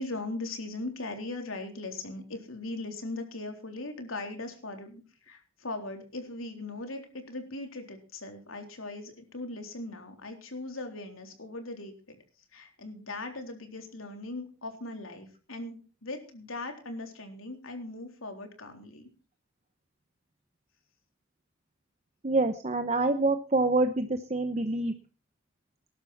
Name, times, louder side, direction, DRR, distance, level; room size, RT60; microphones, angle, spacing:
voice 1, 0.0-12.2 12.5-19.1, left 2 dB, 80° left, 5 dB, 3.7 m, -39 dB
voice 2, 22.2-24.9, right 2 dB, 35° right, 8 dB, 0.9 m, -26 dB
20.0 x 11.5 x 4.3 m, 0.35 s
head